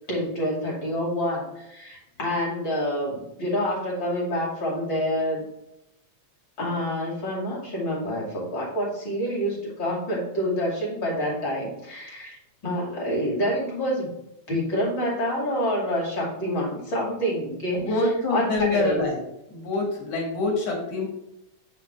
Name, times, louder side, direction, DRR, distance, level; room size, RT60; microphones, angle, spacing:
voice 1, 0.1-5.4 6.6-14.1 14.5-19.1, equal, 40° left, -3 dB, 2.9 m, -27 dB
voice 2, 17.7-19.2 19.5-21.1, left 2 dB, 55° left, -1 dB, 3.0 m, -25 dB
7.6 x 5.6 x 3.4 m, 0.87 s
omnidirectional pair, 3.6 m